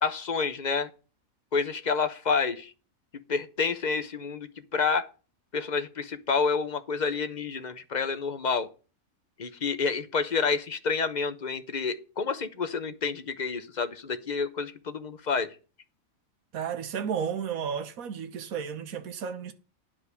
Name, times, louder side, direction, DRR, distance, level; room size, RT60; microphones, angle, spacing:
voice 1, 0.0-0.9 1.5-2.7 3.3-5.1 5.5-8.7 9.4-15.5, left 5 dB, 35° left, 0.9 m, -29 dB
voice 2, 16.5-19.5, right 7 dB, 80° right, 1.5 m, -33 dB
10.5 x 5.1 x 6.9 m
omnidirectional pair, 1.5 m